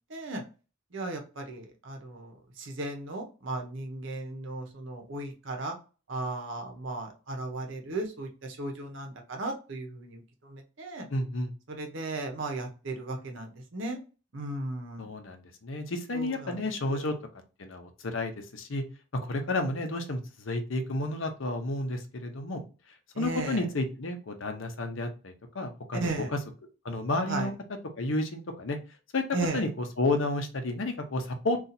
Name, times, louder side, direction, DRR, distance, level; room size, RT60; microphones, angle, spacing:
voice 1, 0.1-0.4 0.9-5.8 6.1-10.2 10.5-11.1 11.7-14.0 14.3-15.1 16.1-17.1 23.1-23.7 25.9-26.3 27.3-27.5 29.3-29.6, right 2 dB, 70° right, 3 dB, 0.8 m, -36 dB
voice 2, 11.1-11.5 15.0-17.1 17.6-18.8 19.1-22.6 23.2-26.4 26.8-27.5 28.0-28.8 29.1-29.2 29.5-31.6, left 2 dB, 70° left, 5 dB, 0.7 m, -31 dB
2.7 x 2.4 x 4.0 m, 0.34 s
head